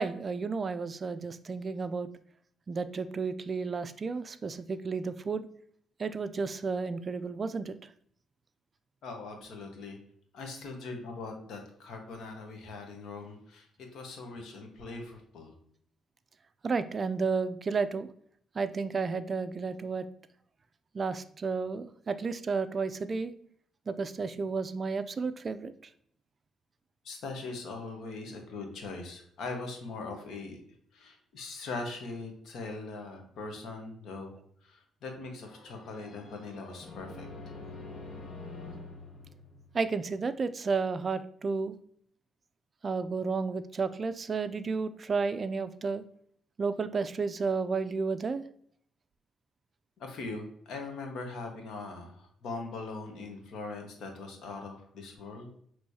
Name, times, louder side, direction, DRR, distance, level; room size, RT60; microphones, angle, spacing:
voice 1, 0.0-2.1 2.7-5.5 6.0-7.8 16.6-18.1 18.6-20.1 20.9-23.3 23.9-25.7 39.7-41.7 42.8-46.0 46.6-48.4, right 4 dB, 40° right, 12 dB, 0.3 m, -32 dB
voice 2, 9.0-10.0 10.3-13.7 13.9-15.5 27.0-30.6 30.9-34.3 34.6-37.3 50.0-55.6, left 3 dB, 75° left, 3 dB, 1.1 m, -41 dB
sound 1, 35.4-40.2, left 3 dB, 55° left, 0.9 m, -46 dB
6.3 x 3.1 x 2.7 m, 0.64 s
cardioid pair, 90°, 0 cm